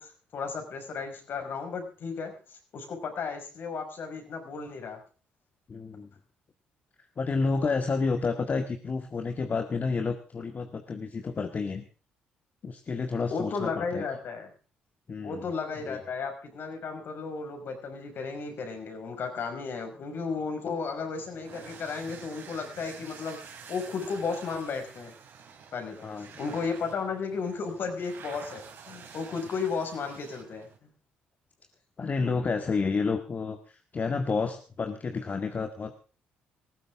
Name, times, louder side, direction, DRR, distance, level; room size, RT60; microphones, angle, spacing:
voice 1, 0.0-5.0 13.3-14.5 15.2-25.1 25.7-30.9, left 5 dB, 60° left, 5 dB, 5.6 m, -34 dB
voice 2, 5.7-6.1 7.2-11.8 12.6-14.0 15.1-15.4 15.9-16.0 26.0-26.3 32.0-35.9, left 4 dB, 40° left, 7 dB, 1.8 m, -30 dB
sound 1, 21.1-30.8, right 6 dB, 65° right, 4.3 m, -48 dB
19.0 x 15.5 x 3.6 m, 0.38 s
hypercardioid pair, 55°, 4 cm